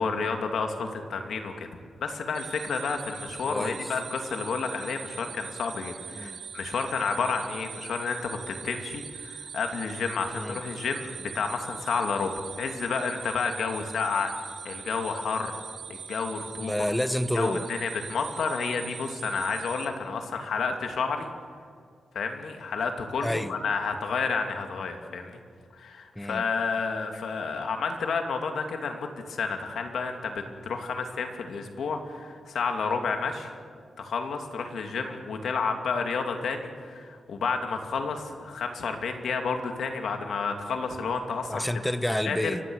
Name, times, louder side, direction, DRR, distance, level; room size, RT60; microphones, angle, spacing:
voice 1, 0.0-1.7 2.0-14.3 14.6-15.6 15.9-16.7 17.3-21.3 22.1-25.4 25.7-33.5 34.0-41.7 42.2-42.6, left 5 dB, 80° left, 4 dB, 2.6 m, -30 dB
sound 1, 2.3-19.8, right 7 dB, 90° right, 4.1 m, -42 dB
voice 2, 3.5-3.8 6.1-6.4 10.3-10.6 16.6-17.7 23.2-23.5 26.2-26.4 41.5-42.6, left 1 dB, 5° left, 12 dB, 1.0 m, -29 dB
30.0 x 16.0 x 6.5 m, 2.2 s
cardioid pair, 100°, 0 cm